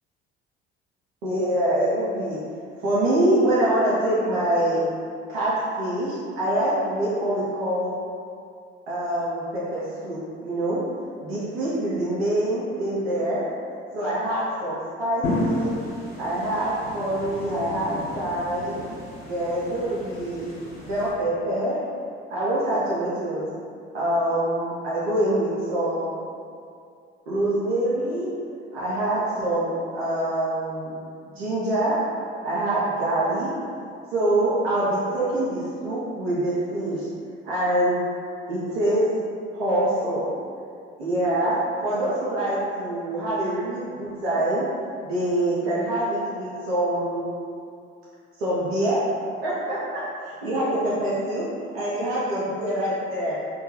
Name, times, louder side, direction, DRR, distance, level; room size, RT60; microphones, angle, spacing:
voice 1, 1.2-2.4 2.8-4.8 5.3-8.0 8.9-10.8 11.2-13.4 13.9-15.7 16.2-18.8 19.3-20.5 20.9-21.8 22.3-23.5 23.9-26.2 27.3-28.3 28.7-31.0 31.4-32.0 32.4-33.5 34.1-37.1 37.4-38.0 38.5-39.0 39.5-40.3 41.0-41.6 41.8-44.6 45.0-47.3 48.4-49.0 49.4-50.0 50.4-51.5 51.7-53.4, right 1 dB, 85° right, -9 dB, 0.5 m, -25 dB
sound 1, 15.2-21.1, left 1 dB, 45° left, 0.9 m, -32 dB
2.2 x 2.2 x 2.8 m, 2.4 s
hypercardioid pair, 55°, 30 cm